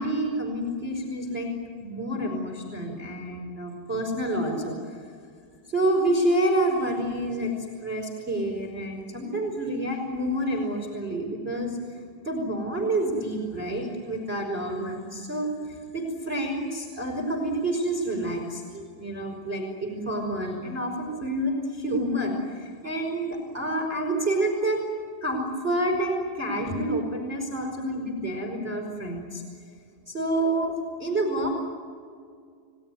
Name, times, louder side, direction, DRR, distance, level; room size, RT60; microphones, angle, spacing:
voice 1, 0.0-1.5 1.8-5.0 5.7-7.5 7.8-11.8 12.2-24.8 25.2-29.4 30.1-30.7 31.0-31.5, right 1 dB, 10° right, 1 dB, 4.7 m, -28 dB
30.0 x 19.5 x 9.8 m, 2.2 s
omnidirectional pair, 5.4 m